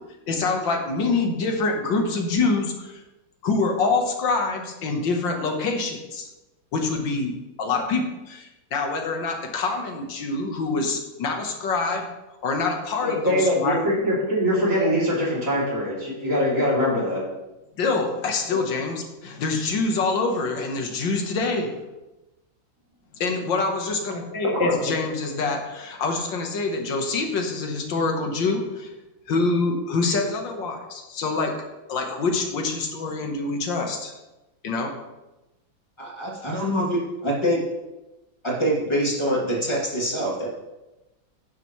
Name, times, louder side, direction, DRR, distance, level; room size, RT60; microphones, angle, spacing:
voice 1, 0.3-3.0 3.4-6.3 6.7-12.1 12.4-13.8 17.8-21.7 23.2-28.9 29.3-31.5 31.9-34.1 34.6-34.9, left 3 dB, 70° left, 3 dB, 1.9 m, -25 dB
voice 2, 13.0-17.2 24.5-24.9, equal, 40° right, -6 dB, 3.4 m, -23 dB
voice 3, 36.0-37.6 38.4-40.5, equal, 15° left, -4 dB, 2.5 m, -25 dB
10.5 x 9.1 x 3.2 m, 1.0 s
omnidirectional pair, 2.1 m